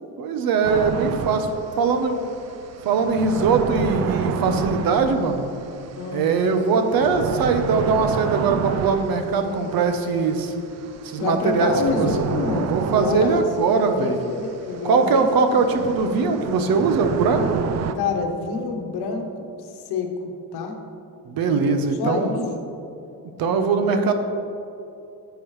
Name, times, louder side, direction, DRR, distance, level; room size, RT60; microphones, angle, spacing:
voice 1, 0.2-1.5 1.8-2.2 2.8-5.4 6.1-10.5 11.0-12.1 12.7-14.2 14.8-17.7 21.3-22.5 23.4-24.1, right 4 dB, 65° right, 7 dB, 0.9 m, -21 dB
sound 1, 0.6-17.9, right 7 dB, 45° right, 0.4 m, -31 dB
voice 2, 5.9-6.3 11.2-13.4 13.7-15.8 17.9-20.8 22.0-22.4, left 4 dB, 85° left, 4 dB, 1.0 m, -27 dB
9.9 x 6.9 x 3.1 m, 2.8 s
cardioid pair, 115°, 38 cm